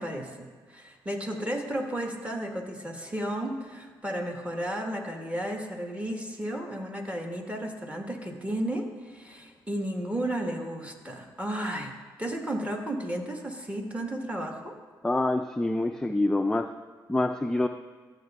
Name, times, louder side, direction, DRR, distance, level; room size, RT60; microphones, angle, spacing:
voice 1, 0.0-11.9 12.2-14.7, right 1 dB, 15° right, 2 dB, 1.5 m, -33 dB
voice 2, 15.0-16.7 17.1-17.7, left 2 dB, 5° left, 7 dB, 0.4 m, -26 dB
13.0 x 7.1 x 2.4 m, 1.5 s
supercardioid pair, 60°, 10 cm